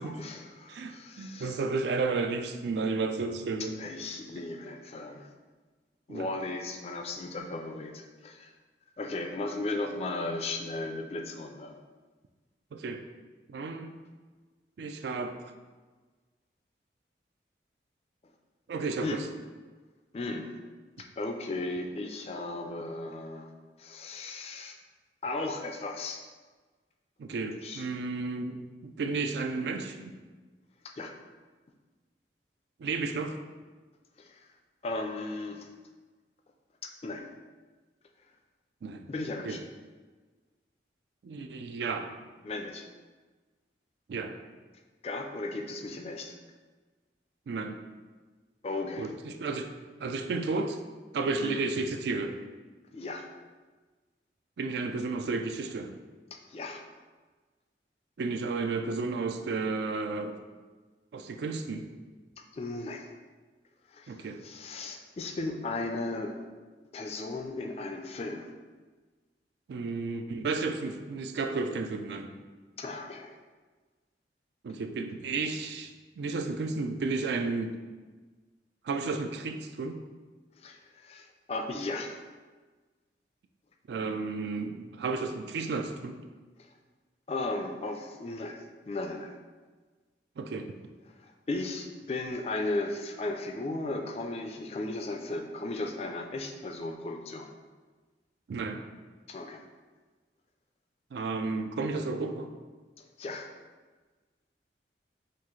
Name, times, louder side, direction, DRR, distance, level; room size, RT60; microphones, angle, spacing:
voice 1, 0.0-1.6 3.6-5.3 6.1-8.5 9.0-11.8 19.0-19.2 20.1-20.5 21.0-23.5 23.8-24.8 25.2-26.3 27.6-27.8 30.8-31.1 34.2-34.5 34.8-35.7 36.8-37.3 39.1-39.6 42.4-42.8 45.0-46.3 48.6-49.1 51.4-51.6 52.9-53.3 56.3-56.8 62.5-63.1 63.9-66.4 66.9-68.5 72.8-73.3 80.6-82.2 87.3-89.3 91.2-97.5 99.3-99.6 103.0-103.5, left 2 dB, 35° left, 4 dB, 0.3 m, -36 dB
voice 2, 0.7-3.8 6.1-6.3 12.7-13.0 13.5-13.9 14.8-15.4 18.7-19.2 27.2-30.1 32.8-33.4 38.8-39.0 39.4-39.6 41.2-42.1 44.1-44.4 47.5-47.8 49.0-49.7 50.0-50.8 51.1-52.4 54.6-56.0 58.2-60.4 61.1-61.9 64.1-64.4 69.7-72.3 74.6-77.8 78.8-80.0 83.9-86.2 90.4-90.8 98.5-98.8 101.1-102.5, right 3 dB, 75° right, 6 dB, 0.3 m, -32 dB
5.8 x 2.4 x 3.1 m, 1.4 s
head